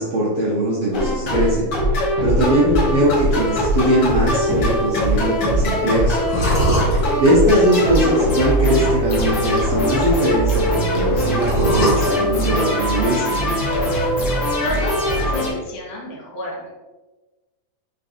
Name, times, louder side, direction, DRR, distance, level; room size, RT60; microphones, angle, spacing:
voice 1, 0.0-1.7 2.2-6.2 7.2-13.3, right 1 dB, 75° right, -6 dB, 1.3 m, -20 dB
sound 1, 0.9-15.5, equal, 70° left, 1.0 m, -21 dB
sound 2, 3.0-15.1, right 1 dB, 40° left, 1.6 m, -28 dB
voice 2, 14.5-16.7, left 1 dB, 85° left, -3 dB, 2.8 m, -29 dB
5.2 x 3.8 x 2.6 m, 1.2 s
omnidirectional pair, 3.5 m